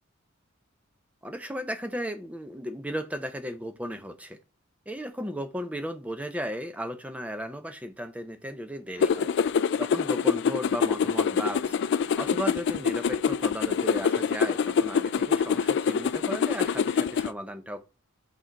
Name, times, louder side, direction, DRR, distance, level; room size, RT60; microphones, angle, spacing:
voice 1, 1.2-4.4 4.9-9.3 9.8-17.9, equal, 5° right, 0.6 m, -35 dB
Punch in the air, 9.0-17.3, left 6 dB, 55° left, 0.3 m, -25 dB
6.2 x 3.9 x 4.6 m
head